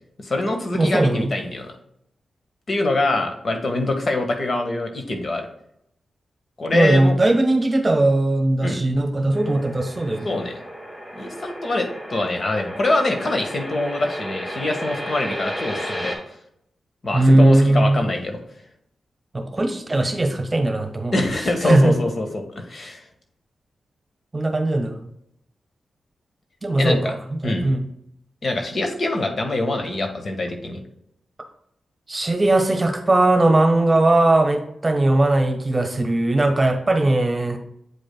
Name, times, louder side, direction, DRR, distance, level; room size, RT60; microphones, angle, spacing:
voice 1, 0.2-1.7 2.7-5.4 6.6-7.1 8.6-8.8 10.2-10.6 11.1-16.1 17.0-18.4 21.1-23.0 26.8-27.0 27.4-27.7 28.4-30.8, left 2 dB, 55° left, 4 dB, 1.4 m, -24 dB
voice 2, 0.7-1.3 6.7-10.3 17.1-18.1 19.3-21.1 21.6-22.0 24.3-24.9 26.6-27.8 32.1-37.6, right 2 dB, 30° right, 5 dB, 1.2 m, -19 dB
sound 1, 9.3-16.2, equal, 25° left, 2.0 m, -33 dB
8.3 x 5.1 x 2.2 m, 0.73 s
cardioid pair, 50°, 0 cm